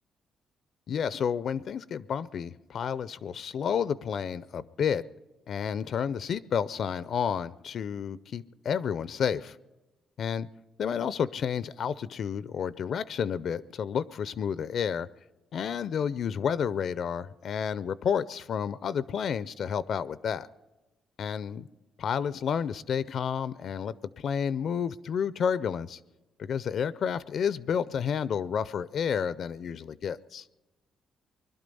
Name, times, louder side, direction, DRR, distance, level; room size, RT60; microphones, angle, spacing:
voice 1, 0.9-5.0 5.5-9.6 10.2-10.5 10.8-15.1 15.5-20.5 21.2-21.7 22.0-26.0 26.4-30.4, left 7 dB, 60° left, 17 dB, 0.4 m, -30 dB
21.5 x 12.0 x 5.4 m, 1.1 s
cardioid pair, 90°, 0 cm